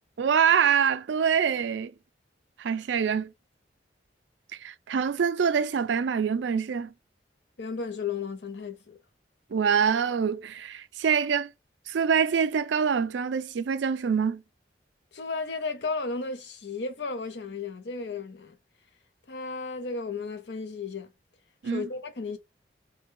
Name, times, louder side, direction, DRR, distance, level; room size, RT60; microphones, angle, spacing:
voice 1, 0.2-1.9 2.6-3.3 4.6-6.9 9.5-11.5 11.9-14.4 21.6-21.8, right 7 dB, 80° right, 0.4 m, -25 dB
voice 2, 7.6-9.0 15.1-18.6 19.3-21.1 21.6-22.4, left 4 dB, 65° left, 0.6 m, -34 dB
3.3 x 2.2 x 3.0 m
head